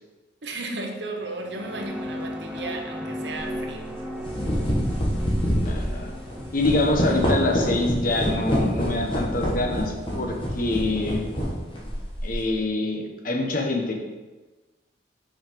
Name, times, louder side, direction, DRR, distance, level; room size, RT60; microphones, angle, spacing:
voice 1, 0.4-3.9, right 2 dB, 70° right, 3 dB, 1.1 m, -34 dB
sound 1, 1.2-9.9, equal, 5° right, 0.6 m, -37 dB
sound 2, 3.3-3.5 4.1-12.5, equal, 30° left, 1.6 m, -26 dB
voice 2, 5.5-6.1 6.5-11.2 12.2-13.9, left 2 dB, 50° left, 2 dB, 1.1 m, -25 dB
5.7 x 5.6 x 5.2 m, 1.2 s
head